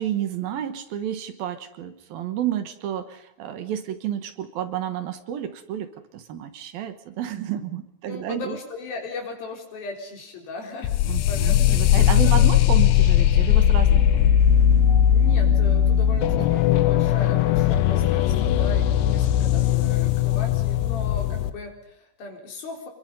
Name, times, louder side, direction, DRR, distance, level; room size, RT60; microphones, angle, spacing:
voice 1, 0.0-8.6 11.0-14.4 16.7-16.9, right 10 dB, 70° right, 9 dB, 2.9 m, -31 dB
voice 2, 8.1-10.9 11.3-12.4 15.1-22.9, left 3 dB, 65° left, 2 dB, 5.7 m, -37 dB
sound 1, 10.8-21.5, left 10 dB, 85° left, 3.1 m, -19 dB
26.5 x 22.5 x 5.4 m, 0.84 s
omnidirectional pair, 4.7 m